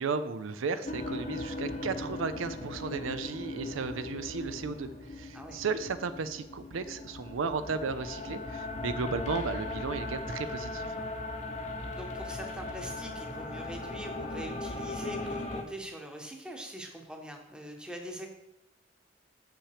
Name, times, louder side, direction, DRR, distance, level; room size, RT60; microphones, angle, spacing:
voice 1, 0.0-11.1, right 4 dB, 90° right, 12 dB, 0.5 m, -34 dB
sound 1, 0.8-15.6, left 2 dB, 35° left, 0.8 m, -38 dB
voice 2, 11.9-18.3, right 1 dB, 5° right, 3 dB, 0.9 m, -43 dB
7.1 x 5.9 x 4.9 m, 0.89 s
head